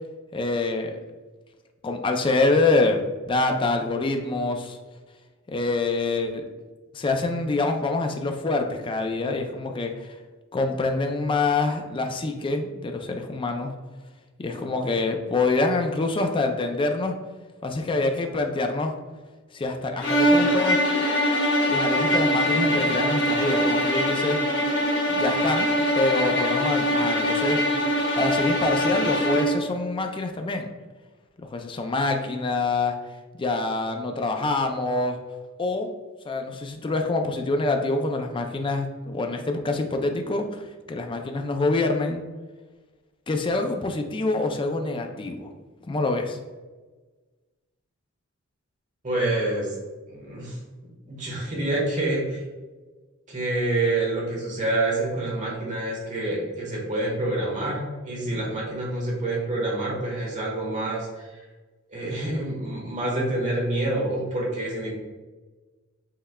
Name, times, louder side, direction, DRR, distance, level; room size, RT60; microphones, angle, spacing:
voice 1, 0.3-1.0 1.8-4.8 5.5-6.4 6.9-10.1 10.5-13.7 14.4-17.1 17.6-18.9 19.5-20.8 21.7-24.4 25.1-25.7 25.9-27.6 28.2-30.7 31.4-33.0 33.4-35.2 35.6-35.9 36.3-42.2 43.3-45.5 45.9-46.4, left 3 dB, 25° left, 4 dB, 0.4 m, -26 dB
sound 1, 20.0-29.7, equal, 60° left, 1.5 m, -23 dB
voice 2, 49.0-49.8 50.1-50.6 51.1-52.4 53.3-61.4 61.9-64.9, right 2 dB, 35° right, -3 dB, 1.3 m, -27 dB
5.6 x 3.2 x 2.2 m, 1.3 s
head